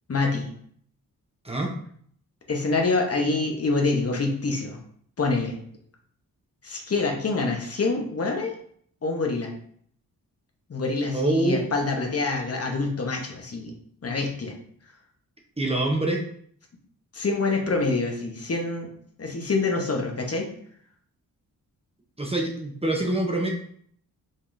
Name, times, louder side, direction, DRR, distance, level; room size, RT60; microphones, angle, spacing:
voice 1, 0.1-0.5 2.5-4.8 5.2-5.6 6.6-8.6 9.0-9.5 10.7-13.7 14.0-14.5 17.1-18.9 19.2-20.5, left 3 dB, 40° left, 2 dB, 1.0 m, -26 dB
voice 2, 11.1-11.7 15.6-16.2 22.2-23.5, right 2 dB, 15° right, 0 dB, 0.8 m, -25 dB
5.3 x 3.5 x 2.7 m, 0.62 s
cardioid pair, 70°, 36 cm